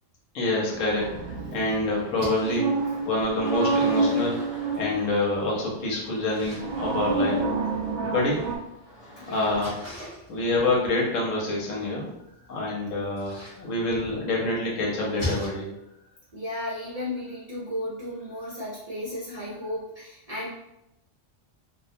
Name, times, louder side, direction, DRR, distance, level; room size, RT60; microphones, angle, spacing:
voice 1, 0.3-2.7 3.0-4.4 4.8-7.5 8.1-8.5 9.3-9.8 10.3-12.1 12.5-15.7, left 2 dB, 85° left, -3 dB, 1.1 m, -27 dB
sound 1, 0.7-5.3 6.4-8.6, right 3 dB, 75° right, 0.9 m, -28 dB
sound 2, 0.9-10.0, equal, 40° left, 1.0 m, -48 dB
Splash splatter, 2.0-15.5, left 1 dB, 15° left, 0.8 m, -43 dB
voice 2, 9.2-9.7 12.3-12.6 13.4-13.8 14.4-14.5 16.3-20.5, left 1 dB, 40° right, -9 dB, 0.6 m, -35 dB
2.5 x 2.2 x 2.6 m, 0.87 s
omnidirectional pair, 1.3 m